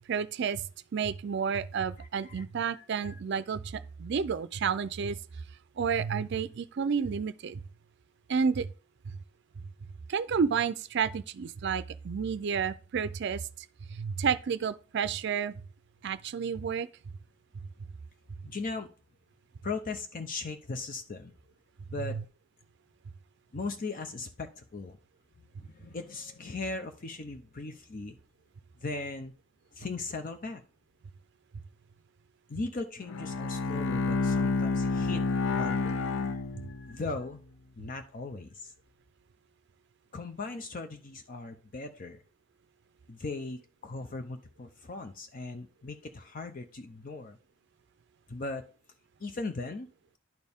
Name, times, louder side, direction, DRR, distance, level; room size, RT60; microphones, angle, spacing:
voice 1, 0.1-0.6 0.9-5.2 5.8-7.6 8.3-8.7 9.1-9.2 10.1-13.5 13.9-15.5 16.0-16.9 22.0-22.2, right 6 dB, 60° right, 0.4 m, -30 dB
voice 2, 2.0-2.4 2.8-3.2 18.4-18.9 19.6-21.3 21.9-22.2 23.5-25.0 25.6-28.2 28.8-29.3 29.7-30.6 32.5-37.4 37.8-38.7 40.1-42.2 43.1-47.4 48.3-48.6 49.2-49.9, left 3 dB, 45° left, 0.6 m, -38 dB
Bowed string instrument, 33.0-37.1, left 3 dB, 85° left, 0.5 m, -29 dB
10.5 x 4.4 x 3.5 m
head